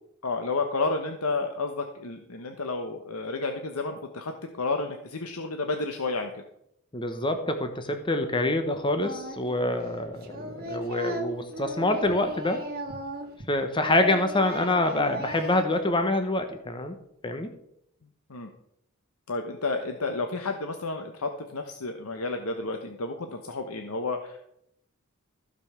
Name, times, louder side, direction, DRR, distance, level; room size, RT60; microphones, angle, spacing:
voice 1, 0.2-6.4 18.3-18.5 19.3-24.5, left 3 dB, 85° left, 5 dB, 1.1 m, -31 dB
voice 2, 6.9-12.6 13.5-16.9 17.2-17.5, left 2 dB, 20° left, 7 dB, 1.0 m, -26 dB
Singing, 9.0-9.6 9.8-13.5 13.8-15.8, right 1 dB, 45° right, 2.2 m, -36 dB
15.5 x 5.4 x 6.7 m, 0.76 s
head